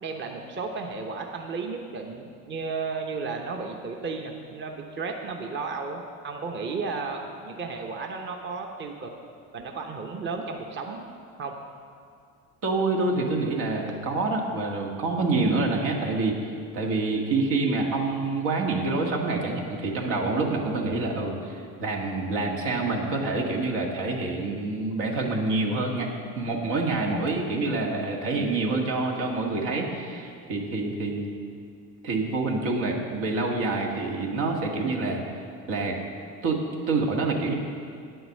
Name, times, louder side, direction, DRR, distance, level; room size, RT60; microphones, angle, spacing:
voice 1, 0.0-9.1 9.5-11.0 11.4-11.5, right 4 dB, 35° right, 2 dB, 0.9 m, -33 dB
voice 2, 12.6-26.1 26.4-31.3 32.0-35.2 35.7-36.0 36.4-37.5, right 3 dB, 80° right, 0 dB, 1.8 m, -27 dB
9.4 x 7.8 x 6.5 m, 2.3 s
cardioid pair, 105°, 32 cm